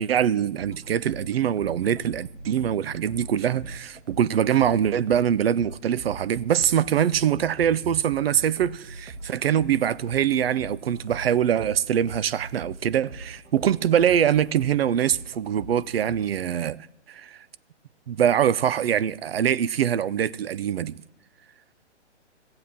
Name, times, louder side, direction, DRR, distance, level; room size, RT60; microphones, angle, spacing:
voice 1, 0.0-17.4 18.1-21.0, right 9 dB, 55° right, 0.5 m, -23 dB
sound 1, 0.6-16.6, right 2 dB, 80° right, 1.7 m, -42 dB
15.0 x 7.8 x 8.5 m
hypercardioid pair, 140°, 35 cm